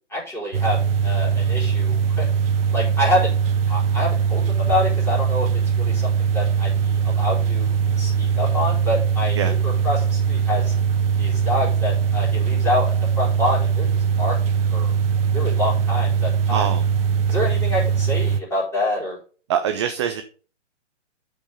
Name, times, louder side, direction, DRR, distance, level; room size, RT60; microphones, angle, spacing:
voice 1, 0.1-2.3 2.7-3.3 3.7-5.5 5.8-7.7 8.0-10.7 11.2-14.3 14.7-14.9 15.3-16.7 17.3-19.2, left 1 dB, 5° left, 4.6 m, -26 dB
sound 1, 0.5-18.4, right 7 dB, 50° right, 1.0 m, -21 dB
voice 2, 16.5-16.8 19.5-20.2, right 8 dB, 25° right, 0.5 m, -24 dB
8.2 x 5.6 x 5.5 m
hypercardioid pair, 150°, 37 cm